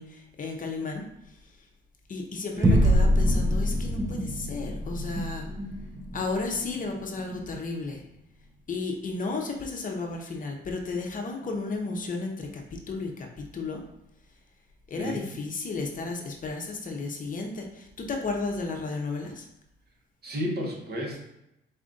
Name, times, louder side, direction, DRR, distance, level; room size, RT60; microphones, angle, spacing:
voice 1, 0.0-1.7 2.1-5.5 6.1-8.0 8.7-13.8 14.9-19.5, left 3 dB, 40° left, 2 dB, 0.8 m, -33 dB
sound 1, 2.6-7.4, equal, 15° right, 0.7 m, -25 dB
voice 2, 20.2-21.2, equal, 55° right, -1 dB, 1.2 m, -32 dB
4.2 x 2.5 x 3.8 m, 0.85 s
cardioid pair, 90°, 20 cm